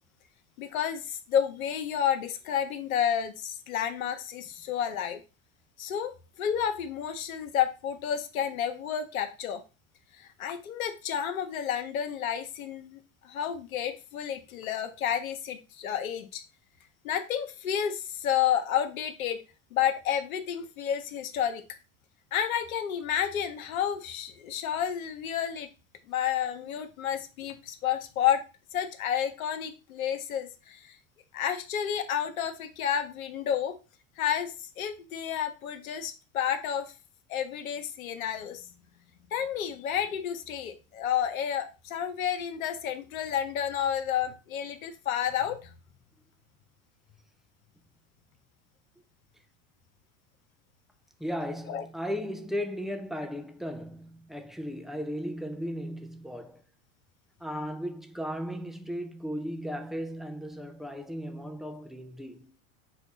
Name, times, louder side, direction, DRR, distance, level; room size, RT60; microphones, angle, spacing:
voice 1, 0.6-5.2 5.8-9.6 10.1-16.4 17.0-19.4 19.7-21.6 22.3-25.7 26.1-28.4 28.7-31.0 31.3-33.8 34.2-36.9 37.3-38.7 39.3-45.7 51.7-51.9, left 9 dB, 90° left, 0.8 m, -30 dB
voice 2, 51.2-56.6 57.4-62.6, equal, ahead, 0.3 m, -36 dB
5.9 x 2.3 x 3.9 m
hypercardioid pair, 85°, 40 cm